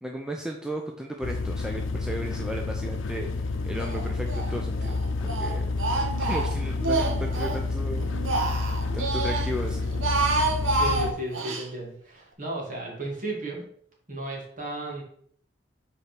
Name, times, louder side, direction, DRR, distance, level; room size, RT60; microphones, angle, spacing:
voice 1, 0.0-5.6 6.2-8.7 8.9-9.9, right 1 dB, 5° right, 1 dB, 0.6 m, -35 dB
sound 1, 1.2-11.1, left 3 dB, 80° left, 0.7 m, -29 dB
Speech, 3.8-4.5 4.8-7.6 8.0-9.5 9.9-11.7, right 3 dB, 90° right, 1.2 m, -28 dB
voice 2, 10.7-13.7 14.1-15.0, right 2 dB, 40° right, -2 dB, 2.4 m, -34 dB
5.6 x 4.7 x 6.0 m, 0.63 s
head